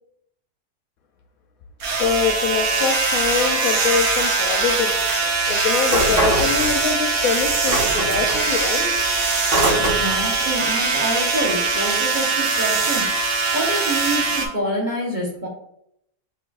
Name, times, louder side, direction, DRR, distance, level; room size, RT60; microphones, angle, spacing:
voice 1, 1.8-4.9 5.5-8.9, left 6 dB, 70° left, 4 dB, 0.9 m, -24 dB
sound 1, 1.8-14.5, right 4 dB, 60° right, 0.9 m, -21 dB
sound 2, 5.8-7.1 7.4-10.3, right 1 dB, 85° right, 1.9 m, -23 dB
voice 2, 9.8-13.3 13.5-15.5, right 1 dB, 35° right, -4 dB, 1.0 m, -27 dB
5.9 x 3.1 x 2.4 m, 0.75 s
omnidirectional pair, 1.7 m